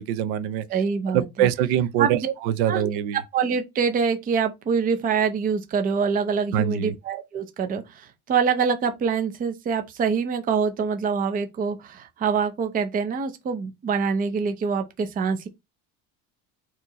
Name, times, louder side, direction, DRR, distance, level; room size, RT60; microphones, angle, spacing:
voice 1, 0.0-0.6 1.1-3.2 6.5-6.9, right 10 dB, 75° right, 0.7 m, -24 dB
voice 2, 0.7-1.5 2.0-2.3 2.7-2.8 3.3-15.5, right 6 dB, 20° right, 0.5 m, -25 dB
4.5 x 3.0 x 3.9 m
cardioid pair, 170°, 40 cm